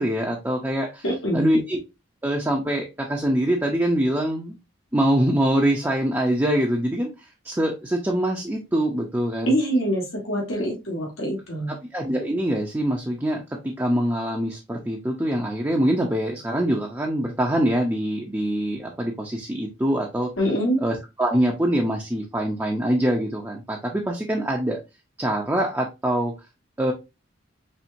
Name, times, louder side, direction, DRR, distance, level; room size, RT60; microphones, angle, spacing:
voice 1, 0.0-1.0 1.3-1.8 2.2-4.5 4.9-7.1 7.4-9.5 11.7-20.3 20.8-24.8 25.2-26.3 26.8-26.9, right 1 dB, 10° right, -1 dB, 0.6 m, -24 dB
voice 2, 1.0-1.5 9.5-11.8 20.4-20.8, equal, 85° left, -1 dB, 1.6 m, -24 dB
4.4 x 3.2 x 2.6 m, 0.24 s
head